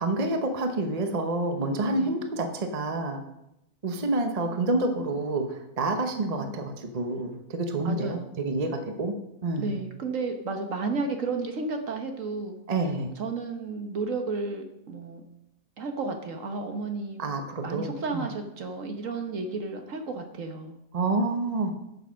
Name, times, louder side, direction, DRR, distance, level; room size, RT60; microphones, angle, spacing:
voice 1, 0.0-3.2 3.8-9.2 9.4-9.8 12.7-13.1 17.2-18.3 20.9-21.7, right 2 dB, 30° right, 5 dB, 0.9 m, -28 dB
voice 2, 6.2-6.6 7.8-8.3 9.6-12.6 13.2-15.2 15.8-17.3 17.6-20.8, right 3 dB, 55° right, 5 dB, 1.4 m, -32 dB
9.7 x 6.8 x 6.3 m, 0.86 s
omnidirectional pair, 1.7 m